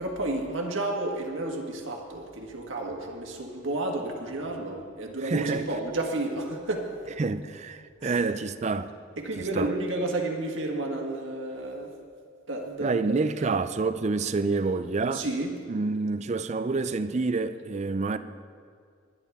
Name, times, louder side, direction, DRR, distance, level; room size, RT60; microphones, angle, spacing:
voice 1, 0.0-6.9 8.0-8.2 9.2-11.9 12.5-12.9 13.4-13.6 15.1-15.5, right 2 dB, 70° right, 1.7 m, -31 dB
voice 2, 5.2-5.8 7.2-8.9 9.4-9.7 12.8-15.2 15.7-18.2, right 3 dB, 35° right, 0.4 m, -28 dB
20.5 x 10.5 x 3.6 m
head